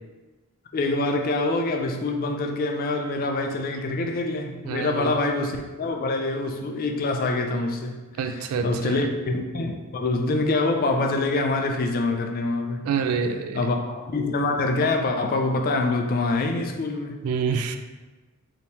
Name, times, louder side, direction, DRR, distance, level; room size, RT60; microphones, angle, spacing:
voice 1, 0.7-12.9 13.5-17.2, left 2 dB, 40° left, 3 dB, 0.4 m, -25 dB
voice 2, 4.6-5.2 8.2-9.1 12.8-13.6 17.2-17.8, right 5 dB, 75° right, 7 dB, 0.3 m, -27 dB
3.3 x 3.0 x 2.7 m, 1.2 s
head